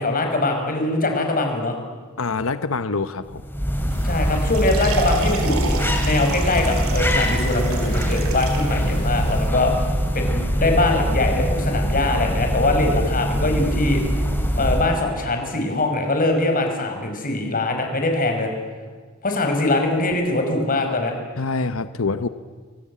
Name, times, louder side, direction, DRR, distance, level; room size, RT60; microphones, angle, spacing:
voice 1, 0.0-1.8 4.0-14.0 14.5-18.5 19.2-21.1, left 2 dB, 40° left, 4 dB, 5.5 m, -22 dB
voice 2, 2.2-3.4 21.4-22.3, left 4 dB, 70° left, 12 dB, 1.0 m, -25 dB
sound 1, 3.3-15.1, equal, 10° left, 3.2 m, -23 dB
sound 2, 3.9-9.5, right 3 dB, 80° right, 4.2 m, -31 dB
30.0 x 23.0 x 8.6 m, 1.5 s
head